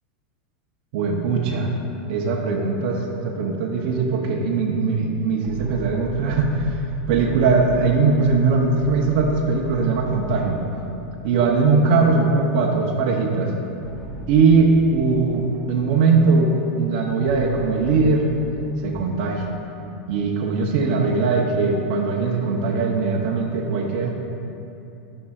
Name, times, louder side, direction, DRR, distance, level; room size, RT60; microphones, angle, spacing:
voice 1, 0.9-1.7 2.1-6.8 7.1-10.6 11.2-13.5 14.3-18.3 18.8-19.4 20.1-24.1, right 4 dB, 50° right, -1 dB, 0.6 m, -20 dB
sound 1, 5.4-11.8 12.2-12.3 13.8-16.3 17.2-20.0, right 2 dB, 5° right, 1.2 m, -36 dB
11.0 x 5.4 x 2.4 m, 2.8 s
supercardioid pair, 160°, 6 cm